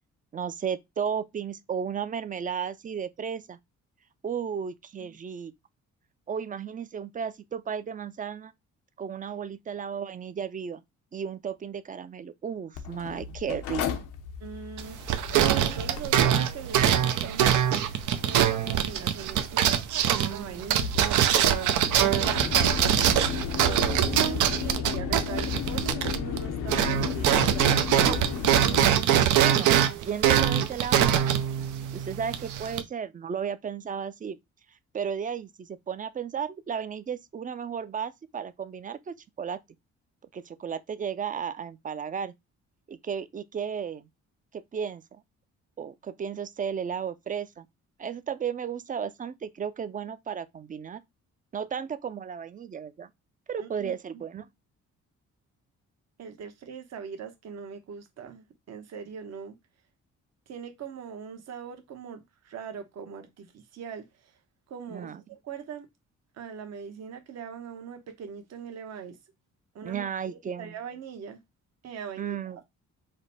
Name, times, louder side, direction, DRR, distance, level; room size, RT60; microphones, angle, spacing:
voice 1, 0.3-3.6 4.2-5.5 6.3-8.5 9.0-10.8 11.1-14.1 28.5-31.5 31.9-34.4 34.9-39.6 40.3-42.3 42.9-44.1 44.5-45.2 45.8-47.7 48.0-51.0 51.5-53.1 53.5-54.5 64.9-65.2 69.8-70.7 72.2-72.6, right 7 dB, 25° right, 0.4 m, -34 dB
Mechanical fan, 12.8-28.8, left 7 dB, 90° left, 0.7 m, -35 dB
voice 2, 14.4-17.6 18.2-19.8 20.1-21.1 21.8-22.6 23.8-27.7 53.6-54.2 56.2-59.6 60.5-64.3 64.7-65.9 66.3-69.2 69.7-71.4 71.8-72.6, right 7 dB, 60° right, 1.0 m, -41 dB
sound 1, 14.8-26.4 26.7-32.8, right 10 dB, 80° right, 0.7 m, -23 dB
5.0 x 2.1 x 4.1 m
cardioid pair, 90°, 30 cm